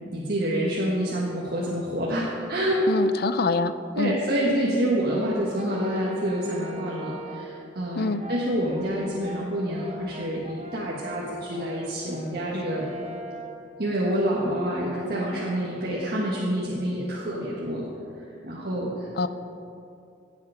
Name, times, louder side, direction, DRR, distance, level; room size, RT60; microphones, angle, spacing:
voice 1, 0.0-2.9 3.9-12.9 13.8-17.8 18.4-19.1, equal, 55° right, -5 dB, 1.6 m, -27 dB
voice 2, 2.9-4.2 7.9-8.2 19.2-19.3, left 3 dB, 55° left, 13 dB, 0.5 m, -25 dB
Brass instrument, 5.1-7.6 8.2-15.1, right 1 dB, 35° right, 0.9 m, -42 dB
17.5 x 7.6 x 5.0 m, 2.7 s
head